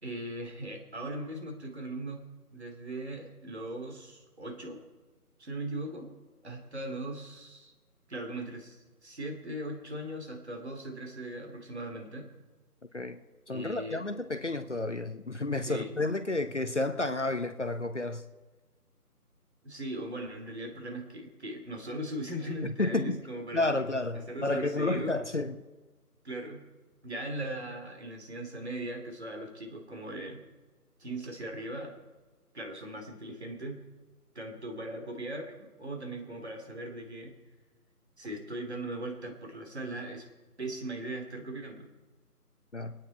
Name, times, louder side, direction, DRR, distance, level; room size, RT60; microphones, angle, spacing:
voice 1, 0.0-2.2 2.5-4.8 5.4-6.1 6.4-7.7 8.1-12.3 13.5-14.0 15.6-16.0 19.6-23.8 24.1-25.2 26.2-26.6 27.0-30.4 31.0-31.9 32.5-33.8 34.3-37.3 38.2-40.2 40.6-41.9, right 1 dB, 45° right, 2.7 m, -39 dB
voice 2, 13.5-18.2 22.6-23.2 23.5-25.6 42.7-42.9, left 2 dB, 50° left, 0.8 m, -31 dB
21.5 x 9.5 x 4.4 m
figure-of-eight pair, 165°, 47 cm